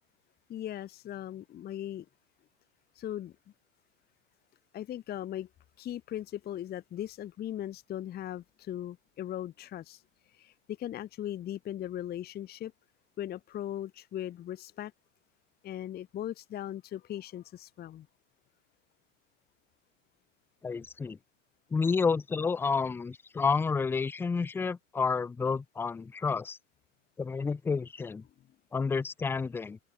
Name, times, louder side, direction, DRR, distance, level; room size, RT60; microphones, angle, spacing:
voice 1, 0.5-2.1 2.9-3.4 4.7-5.5 5.8-10.0 10.3-12.7 13.2-14.9 15.6-18.1, left 11 dB, 25° left, 0.9 m, -38 dB
voice 2, 20.6-21.2 21.7-26.6 27.2-28.2 28.7-29.8, left 5 dB, 5° left, 0.4 m, -30 dB
hypercardioid pair, 95°, 39 cm